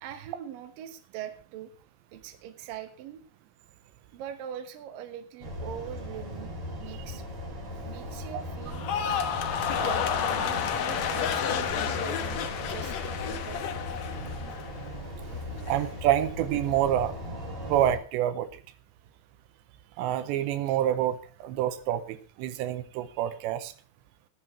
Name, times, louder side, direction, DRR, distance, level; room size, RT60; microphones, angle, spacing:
voice 1, 0.0-1.7 2.1-3.2 4.1-6.5 6.8-7.2 7.8-8.9 9.7-13.6 14.5-14.6 15.7-15.8, right 10 dB, 65° right, 8 dB, 2.7 m, -42 dB
sound 1, 5.4-18.0, left 1 dB, 35° right, 4.5 m, -38 dB
sound 2, 8.7-15.0 15.3-15.8, left 8 dB, 75° left, 1.6 m, -30 dB
voice 2, 15.7-17.1 17.7-18.5 20.0-23.7, right 11 dB, 90° right, 12 dB, 3.1 m, -27 dB
18.0 x 10.5 x 3.3 m, 0.38 s
omnidirectional pair, 5.0 m